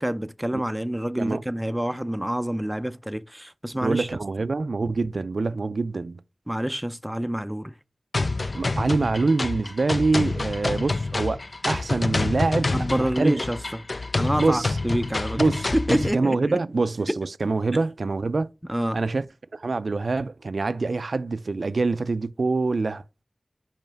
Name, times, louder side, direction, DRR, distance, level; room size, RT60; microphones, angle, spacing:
voice 1, 0.0-4.1 6.5-7.7 12.7-13.9 14.2-15.4 15.7-16.6 17.1-17.2 17.7-17.8 18.7-19.0, right 1 dB, 10° right, 0.4 m, -27 dB
voice 2, 3.8-6.2 8.5-13.4 14.4-14.8 15.4-18.5 18.9-23.0, right 3 dB, 80° right, 0.3 m, -25 dB
sound 1, 8.1-16.1, left 3 dB, 60° left, 0.3 m, -27 dB
5.5 x 4.9 x 4.4 m
wide cardioid pair, 60°, 0 cm